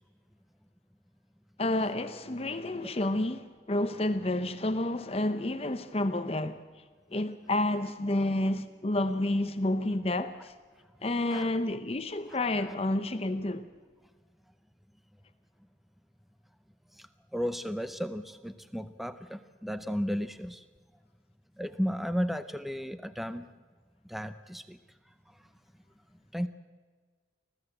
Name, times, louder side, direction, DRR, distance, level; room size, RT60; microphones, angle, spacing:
voice 1, 1.6-6.6 7.1-10.5 11.0-13.7, left 1 dB, 30° left, 0.8 m, -30 dB
voice 2, 16.9-20.7 21.6-23.5 24.0-24.8 25.3-25.4 26.3-26.5, equal, ahead, 0.6 m, -34 dB
24.5 x 16.0 x 7.8 m
head